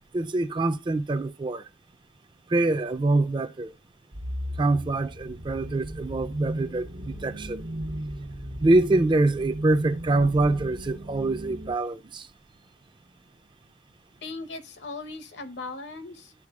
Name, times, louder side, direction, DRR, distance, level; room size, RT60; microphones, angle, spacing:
voice 1, 0.1-1.6 2.5-3.7 4.6-7.6 8.6-12.3, right 2 dB, 25° right, 0.4 m, -25 dB
sound 1, 4.1-11.7, equal, 85° right, 1.0 m, -36 dB
voice 2, 14.2-16.3, left 3 dB, 70° left, 0.9 m, -38 dB
12.0 x 4.4 x 2.3 m
head